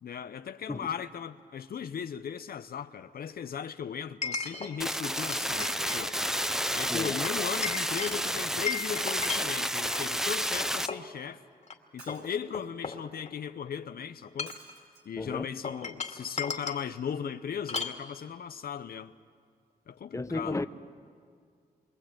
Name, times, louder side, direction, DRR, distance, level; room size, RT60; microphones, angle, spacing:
voice 1, 0.0-6.2 6.7-11.4 11.9-14.6 15.0-19.1 19.9-20.6, left 7 dB, 65° left, 0.8 m, -37 dB
Chink clink, 0.7-0.8 4.2-4.7 5.2-6.0 6.3-6.6 7.2-10.0 10.6-11.1 11.6-11.7 12.1-13.5 14.2-14.7 15.6-16.8 17.7-18.0, left 5 dB, 45° left, 2.5 m, -36 dB
sound 1, 4.8-10.9, equal, 5° right, 0.9 m, -30 dB
Shatter, 6.5-6.9 9.3-10.2 12.0-12.8 14.5-15.0 15.7-15.8 16.0-16.1, right 3 dB, 85° right, 5.6 m, -52 dB
voice 2, 15.2-15.5 20.1-20.7, left 2 dB, 20° left, 1.1 m, -33 dB
27.0 x 23.5 x 9.0 m
cardioid pair, 60°, 17 cm